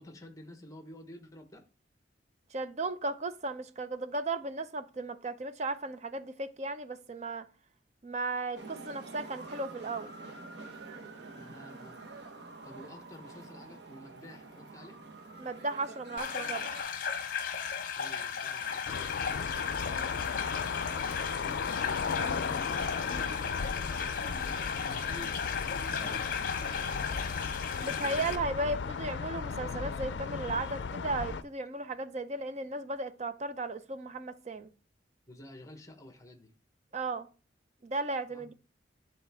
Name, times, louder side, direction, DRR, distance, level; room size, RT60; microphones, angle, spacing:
voice 1, 0.0-1.6 11.3-12.0 12.6-15.0 17.8-19.3 21.4-27.4 28.1-28.6 35.3-36.5 38.3-38.5, equal, 20° left, 0.9 m, -50 dB
voice 2, 2.5-7.5 8.0-10.1 15.4-16.7 19.8-20.0 27.8-34.7 36.9-37.3 37.8-38.5, right 2 dB, 40° right, 0.5 m, -35 dB
sound 1, 8.5-16.8, right 3 dB, 60° right, 1.0 m, -47 dB
sound 2, 16.2-28.4, left 6 dB, 50° left, 0.8 m, -35 dB
sound 3, 18.9-31.4, left 5 dB, 70° left, 0.4 m, -36 dB
9.9 x 4.0 x 3.4 m
head